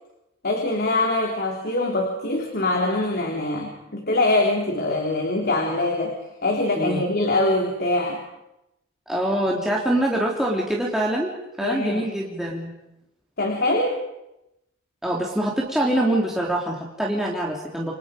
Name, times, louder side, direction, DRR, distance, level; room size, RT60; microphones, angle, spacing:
voice 1, 0.4-8.2 11.6-12.1 13.4-14.1, left 2 dB, 50° left, 1 dB, 3.6 m, -23 dB
voice 2, 9.1-11.3 11.6-12.7 15.0-17.9, right 1 dB, ahead, -4 dB, 3.4 m, -24 dB
29.0 x 26.5 x 5.3 m, 0.87 s
head